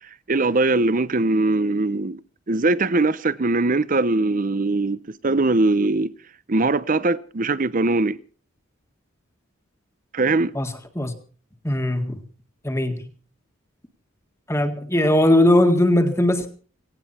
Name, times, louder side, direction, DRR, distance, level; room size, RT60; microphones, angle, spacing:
voice 1, 0.3-2.2 2.5-6.1 6.5-8.2 10.1-10.5, right 2 dB, 40° right, 0.7 m, -21 dB
voice 2, 10.5-11.1 11.6-12.2 12.6-13.1 14.5-16.5, left 1 dB, 15° left, 1.8 m, -19 dB
18.0 x 17.5 x 4.4 m
head